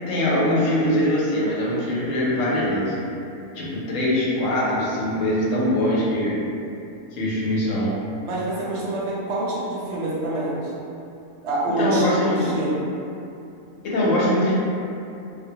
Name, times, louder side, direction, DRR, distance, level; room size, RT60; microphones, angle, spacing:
voice 1, 0.1-2.9 3.5-6.4 7.1-7.9 11.8-12.5 13.8-14.5, left 1 dB, 75° left, -6 dB, 0.9 m, -22 dB
voice 2, 8.2-10.7 11.4-12.8, right 1 dB, 65° right, -6 dB, 0.8 m, -26 dB
2.3 x 2.1 x 2.6 m, 2.7 s
omnidirectional pair, 1.4 m